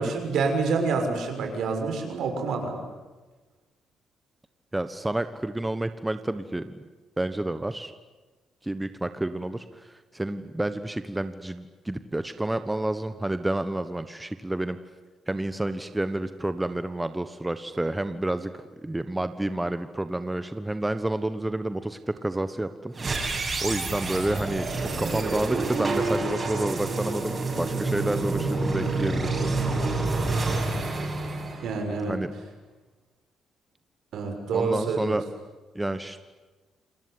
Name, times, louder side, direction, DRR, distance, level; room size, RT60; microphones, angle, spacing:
voice 1, 0.0-2.8 30.2-30.5 31.6-32.1 34.1-35.2, right 4 dB, 70° right, 4 dB, 6.5 m, -27 dB
voice 2, 4.7-6.7 7.2-7.9 8.6-14.8 15.3-18.5 18.8-23.2 23.6-29.5 32.1-32.3 34.5-35.2 35.7-36.2, right 1 dB, 10° right, 10 dB, 1.3 m, -29 dB
sound 1, 22.9-32.2, right 3 dB, 35° right, 7.9 m, -28 dB
28.0 x 20.5 x 10.0 m, 1.2 s
cardioid pair, 90°, 0 cm